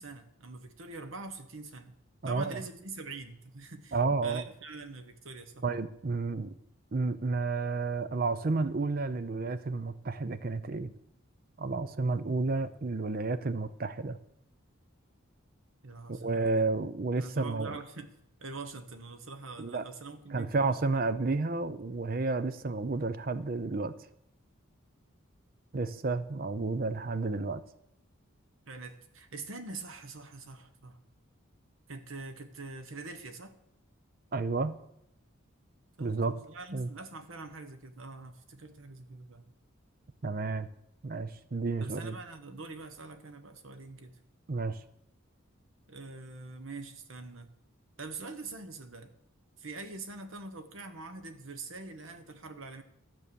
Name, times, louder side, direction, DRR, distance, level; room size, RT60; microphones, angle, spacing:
voice 1, 0.0-2.0 2.2-5.6 15.8-16.7 17.2-18.1 18.4-20.8 28.7-31.0 31.9-33.5 36.0-39.5 41.8-44.1 45.9-47.5 48.0-49.1 49.6-52.8, right 3 dB, 70° right, 9 dB, 1.2 m, -44 dB
voice 2, 2.2-2.6 3.9-4.4 5.6-6.6 6.9-10.9 11.6-14.2 16.1-17.8 19.6-19.8 20.3-23.9 25.7-27.6 34.3-34.8 36.0-36.3 36.7-36.9 40.2-40.7 41.0-42.2 44.5-44.8, right 3 dB, 45° right, 13 dB, 0.6 m, -31 dB
12.5 x 7.7 x 6.9 m, 0.76 s
head